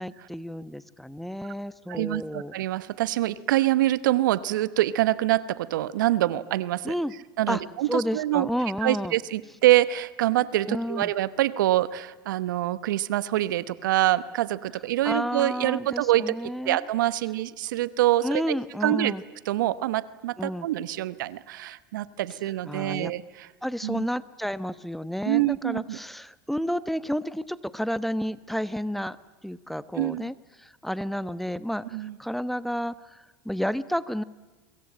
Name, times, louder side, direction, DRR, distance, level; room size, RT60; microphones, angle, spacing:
voice 1, 0.0-2.5 6.8-7.1 7.5-7.6 7.9-9.2 10.7-11.1 15.0-16.8 18.2-19.2 20.4-20.7 22.7-23.1 23.6-29.2 29.4-34.2, equal, ahead, 16 dB, 1.1 m, -31 dB
voice 2, 1.9-6.9 7.4-8.5 8.8-18.6 18.8-19.1 19.5-23.5 23.8-24.1 25.3-26.0 30.0-30.3 31.9-32.2, right 15 dB, 75° right, 17 dB, 1.1 m, -25 dB
25.0 x 22.5 x 8.9 m, 1.2 s
hypercardioid pair, 90°, 11 cm